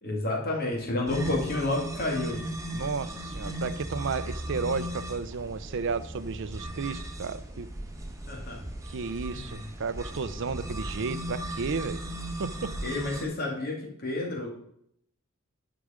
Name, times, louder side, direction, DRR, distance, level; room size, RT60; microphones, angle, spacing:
voice 1, 0.0-2.4 8.3-8.6 9.3-9.6 12.8-14.5, left 2 dB, 45° left, 0 dB, 2.3 m, -30 dB
sound 1, 1.1-13.2, right 1 dB, 15° right, 1.2 m, -37 dB
voice 2, 2.7-7.7 8.9-12.0 12.4-12.7, right 4 dB, 60° right, 14 dB, 0.5 m, -33 dB
9.7 x 4.9 x 5.0 m, 0.70 s
head